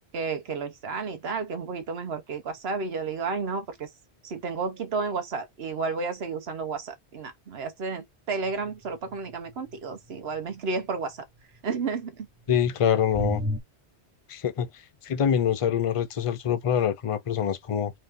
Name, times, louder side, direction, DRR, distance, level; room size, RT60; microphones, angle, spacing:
voice 1, 0.1-3.9 4.2-11.2 11.6-12.6, right 4 dB, 65° right, 1.2 m, -32 dB
sound 1, 8.5-8.7 13.1-13.6, left 1 dB, 15° right, 0.4 m, -27 dB
voice 2, 12.5-13.4 14.3-14.7 15.0-17.9, left 8 dB, 45° left, 0.4 m, -25 dB
4.0 x 2.7 x 3.5 m
omnidirectional pair, 1.1 m